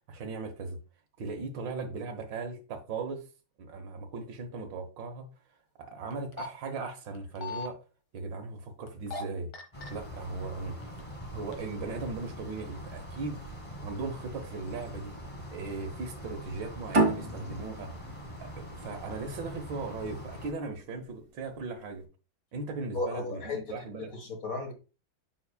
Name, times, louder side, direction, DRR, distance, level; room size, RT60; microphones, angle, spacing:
voice 1, 0.1-0.8 1.2-3.2 3.6-5.3 5.8-7.8 8.1-9.5 9.9-10.8 11.3-15.2 15.5-17.9 18.4-22.1 22.5-24.1, right 3 dB, 70° right, 1.8 m, -38 dB
sound 1, 6.1-6.5 7.1-7.7 8.9-9.2 9.5-9.9 10.6-11.1 11.5-11.6, left 5 dB, 80° left, 2.0 m, -38 dB
sound 2, 9.7-20.5, equal, 20° left, 1.2 m, -43 dB
sound 3, 16.9-20.1, right 2 dB, 45° right, 1.9 m, -30 dB
voice 2, 22.9-24.7, left 3 dB, 45° left, 1.7 m, -35 dB
7.1 x 7.0 x 2.2 m
omnidirectional pair, 2.2 m